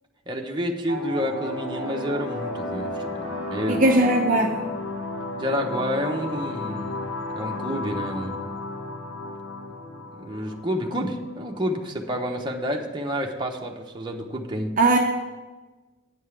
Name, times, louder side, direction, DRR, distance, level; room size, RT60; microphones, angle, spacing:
voice 1, 0.3-4.0 5.4-7.1 7.3-8.4 10.1-14.7, equal, 25° right, 1 dB, 0.9 m, -29 dB
sound 1, 0.9-11.9, left 2 dB, 80° left, 1.3 m, -33 dB
voice 2, 3.7-4.5 14.8-15.0, right 2 dB, 40° right, 2 dB, 0.6 m, -18 dB
9.7 x 5.5 x 8.2 m, 1.3 s
head